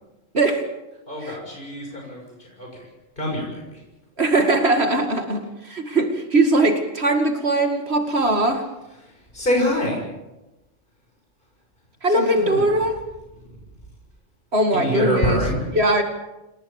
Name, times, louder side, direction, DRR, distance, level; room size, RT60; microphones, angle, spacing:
voice 1, 0.3-0.6 1.2-1.4 4.2-8.6 12.0-13.0 14.5-15.4 15.7-16.0, right 2 dB, 55° right, 5 dB, 2.5 m, -20 dB
voice 2, 1.1-2.9 3.2-3.8 9.0-10.0 12.1-12.6 14.7-15.6, left 1 dB, 40° left, 0 dB, 7.0 m, -26 dB
28.0 x 19.0 x 7.2 m, 1.0 s
omnidirectional pair, 1.3 m